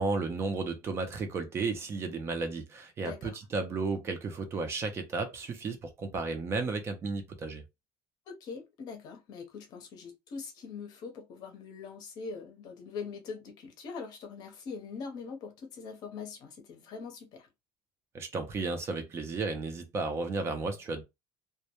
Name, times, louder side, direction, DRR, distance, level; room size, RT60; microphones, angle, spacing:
voice 1, 0.0-7.6 18.1-21.0, right 3 dB, 30° right, 0.5 m, -33 dB
voice 2, 3.0-3.4 8.3-17.5, left 5 dB, 55° left, 0.7 m, -42 dB
2.2 x 2.1 x 2.8 m
cardioid pair, 145°, 8 cm